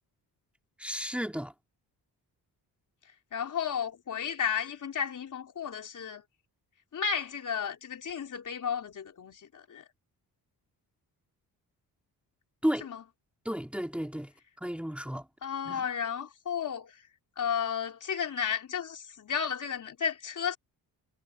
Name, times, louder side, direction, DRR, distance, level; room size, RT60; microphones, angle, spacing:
voice 1, 0.8-1.5 12.6-12.9 13.4-14.3 14.6-15.3 15.7-15.8, equal, 5° right, 3.0 m, -32 dB
voice 2, 3.3-6.2 6.9-9.9 12.8-13.0 15.4-17.0 17.4-20.6, left 7 dB, 50° left, 4.0 m, -33 dB
wide cardioid pair, 135°, 39 cm